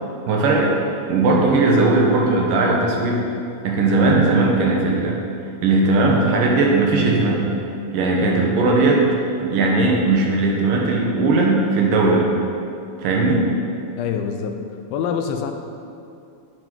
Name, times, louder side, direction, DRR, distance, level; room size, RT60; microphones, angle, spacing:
voice 1, 0.3-0.7 1.1-3.2 3.6-5.1 5.6-7.5 7.9-9.0 9.4-12.2 13.0-13.5, right 3 dB, 75° right, -1 dB, 2.5 m, -18 dB
voice 2, 14.0-14.6 14.9-15.5, left 7 dB, 90° left, 5 dB, 2.4 m, -25 dB
9.7 x 5.3 x 4.5 m, 2.5 s
omnidirectional pair, 4.1 m